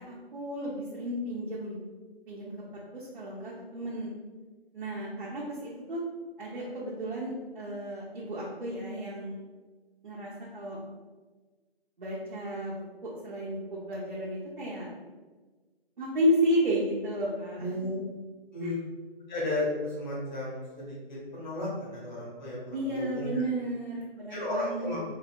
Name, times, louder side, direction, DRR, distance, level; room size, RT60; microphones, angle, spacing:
voice 1, 0.0-1.8 2.3-2.5 2.9-4.1 4.7-6.0 6.4-9.4 10.0-10.8 12.0-14.9 16.0-17.8 18.6-18.8 22.7-25.0, equal, 55° right, -6 dB, 0.6 m, -32 dB
voice 2, 17.6-18.0 18.5-18.8 19.3-23.4 24.3-25.0, left 1 dB, 45° left, -8 dB, 1.3 m, -34 dB
3.9 x 2.1 x 2.2 m, 1.3 s
figure-of-eight pair, 165°, 31 cm